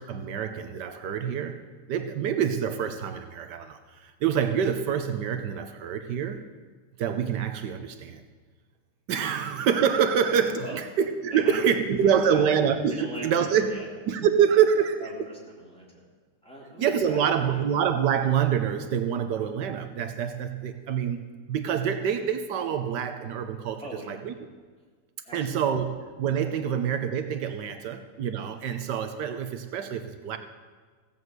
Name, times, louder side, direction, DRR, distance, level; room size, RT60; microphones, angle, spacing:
voice 1, 0.0-1.6 1.9-6.4 7.0-8.2 9.1-13.7 14.1-15.1 16.8-24.3 25.3-30.4, right 8 dB, 80° right, 8 dB, 1.4 m, -26 dB
voice 2, 11.3-12.6 12.9-13.9 14.5-14.6 15.0-16.0 16.4-17.7 23.8-24.2 25.2-25.6, right 1 dB, 5° left, -5 dB, 3.2 m, -42 dB
16.0 x 7.2 x 7.9 m, 1.5 s
omnidirectional pair, 1.8 m